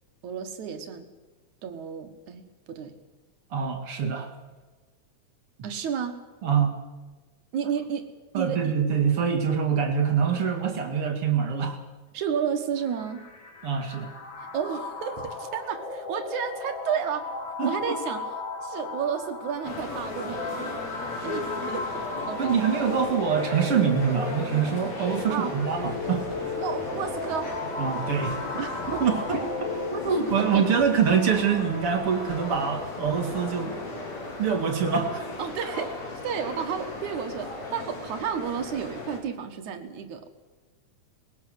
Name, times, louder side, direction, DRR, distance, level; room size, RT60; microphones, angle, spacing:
voice 1, 0.2-1.1 1.6-2.9 5.6-6.2 7.5-8.1 8.3-8.7 12.1-13.3 14.5-17.3 17.6-18.3 18.6-20.9 21.2-21.9 22.3-22.6 25.3-25.6 26.6-27.5 28.6-29.1 30.1-30.7 35.4-36.0 36.2-40.3, right 7 dB, 75° right, 7 dB, 2.9 m, -32 dB
voice 2, 3.5-4.3 6.4-6.9 8.3-11.8 13.6-14.2 17.6-18.0 22.4-26.3 27.8-28.4 29.0-33.7 34.4-35.3, right 7 dB, 50° right, 3 dB, 3.0 m, -25 dB
sound 1, 12.8-30.7, left 3 dB, 80° left, 4.4 m, -36 dB
sound 2, 19.6-39.2, left 3 dB, 60° left, 4.7 m, -36 dB
sound 3, 25.7-33.4, equal, 5° left, 5.3 m, -41 dB
20.5 x 17.5 x 7.9 m, 1.2 s
omnidirectional pair, 3.5 m